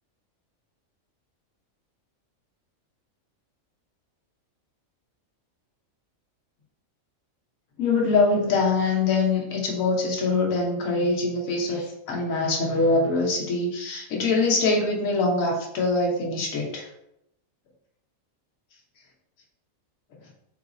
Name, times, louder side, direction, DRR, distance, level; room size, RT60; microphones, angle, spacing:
voice 1, 7.8-16.8, left 3 dB, 75° left, -1 dB, 1.3 m, -23 dB
3.9 x 3.8 x 2.5 m, 0.81 s
omnidirectional pair, 1.4 m